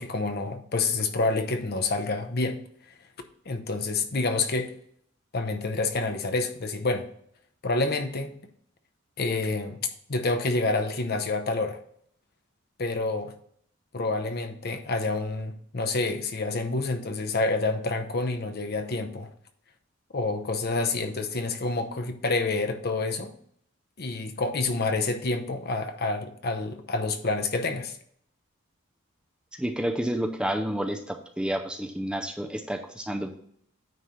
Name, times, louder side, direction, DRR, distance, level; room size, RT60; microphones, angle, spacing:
voice 1, 0.0-2.6 3.5-4.7 5.3-7.1 7.6-8.4 9.2-9.8 10.1-11.8 12.8-13.3 13.9-19.3 20.1-23.3 24.0-28.0, left 3 dB, 50° left, 7 dB, 0.8 m, -28 dB
voice 2, 29.6-33.3, right 1 dB, 5° right, 5 dB, 0.5 m, -30 dB
9.3 x 3.2 x 5.6 m, 0.65 s
head